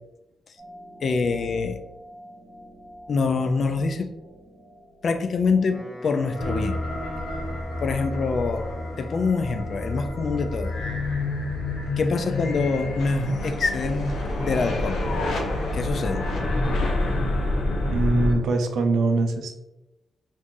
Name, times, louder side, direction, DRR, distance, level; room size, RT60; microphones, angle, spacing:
sound 1, 0.6-17.9, equal, 25° right, 1.1 m, -46 dB
voice 1, 1.0-1.8 3.1-4.1 5.0-6.8 7.8-8.7 9.0-10.7 12.0-15.1 15.7-16.3, left 4 dB, 55° left, 8 dB, 0.3 m, -25 dB
Wind instrument woodwind instrument, 5.5-9.4, equal, 35° left, 1.3 m, -45 dB
sound 2, 6.4-18.3, left 2 dB, 85° left, 0.7 m, -28 dB
voice 2, 17.9-19.6, right 2 dB, 85° right, 5 dB, 0.4 m, -22 dB
2.6 x 2.5 x 3.7 m, 0.96 s
cardioid pair, 95°, 0 cm